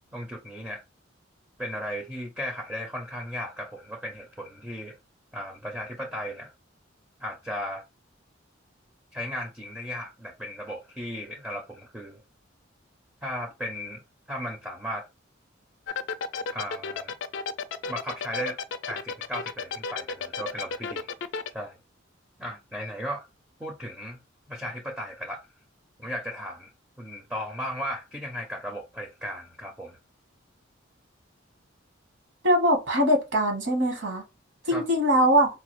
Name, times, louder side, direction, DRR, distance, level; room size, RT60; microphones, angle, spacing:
voice 1, 0.1-0.8 1.6-4.9 5.3-6.5 7.2-7.8 9.1-12.2 13.2-14.0 14.3-15.1 16.5-17.1 17.9-18.6 18.9-21.1 21.5-21.8 22.4-23.3 23.6-24.2 24.5-25.5 26.0-26.7 27.0-30.0 34.7-34.8, equal, 5° right, 0.4 m, -35 dB
sound 1, 15.9-21.5, left 5 dB, 65° left, 0.4 m, -32 dB
voice 2, 32.4-34.2 34.6-35.5, equal, 65° right, 1.2 m, -22 dB
3.9 x 2.3 x 3.0 m
head